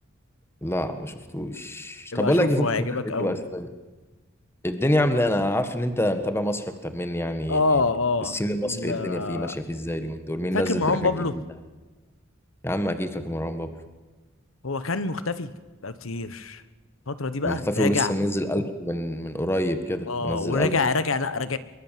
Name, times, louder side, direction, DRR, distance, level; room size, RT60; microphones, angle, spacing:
voice 1, 0.6-3.7 4.6-7.8 8.2-11.3 12.6-13.7 17.4-20.8, left 1 dB, 10° left, 8 dB, 1.6 m, -27 dB
voice 2, 2.1-3.4 7.5-9.5 10.5-11.3 14.6-15.5 15.8-16.6 17.1-18.1 20.1-21.6, left 3 dB, 80° left, 13 dB, 1.2 m, -26 dB
23.5 x 23.0 x 7.6 m, 1.3 s
head